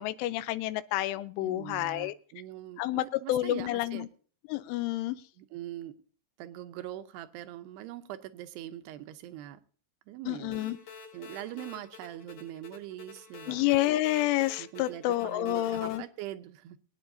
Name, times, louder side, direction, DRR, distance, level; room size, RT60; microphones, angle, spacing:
voice 1, 0.0-2.1 2.8-4.1 4.5-5.2 10.3-10.8 13.5-16.0, left 15 dB, 90° left, 14 dB, 3.2 m, -29 dB
voice 2, 1.4-4.1 5.4-6.0 6.4-9.6 10.1-10.7 11.1-13.7 14.6-16.8, right 13 dB, 80° right, 9 dB, 2.5 m, -42 dB
sound 1, 10.5-16.0, left 5 dB, 50° left, 3.4 m, -48 dB
22.5 x 9.6 x 2.7 m, 0.43 s
omnidirectional pair, 5.4 m